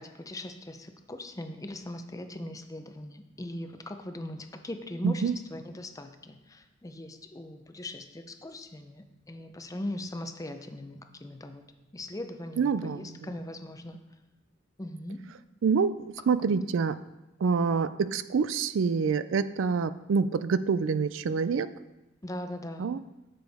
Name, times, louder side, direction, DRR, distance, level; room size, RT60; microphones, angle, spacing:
voice 1, 0.0-11.6 11.9-14.0 14.8-15.2 16.4-16.5 22.2-22.9, left 1 dB, 20° left, 7 dB, 0.6 m, -40 dB
voice 2, 5.0-5.4 12.6-13.2 15.6-17.0 17.4-21.7 22.8-23.0, right 5 dB, 90° right, 15 dB, 0.4 m, -26 dB
9.0 x 6.9 x 3.5 m, 1.0 s
head